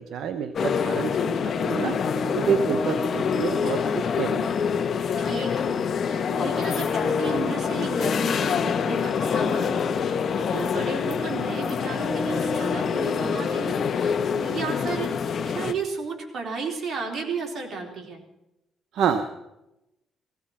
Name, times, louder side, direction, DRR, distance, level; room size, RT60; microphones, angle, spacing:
voice 1, 0.0-2.0 2.3-4.6 18.9-19.3, right 7 dB, 75° right, 8 dB, 0.9 m, -28 dB
sound 1, 0.5-15.7, left 6 dB, 55° left, 1.1 m, -26 dB
voice 2, 5.2-15.2 15.5-18.2, right 5 dB, 55° right, 1 dB, 3.5 m, -34 dB
16.5 x 16.5 x 4.3 m, 0.90 s
cardioid pair, 90°, 0 cm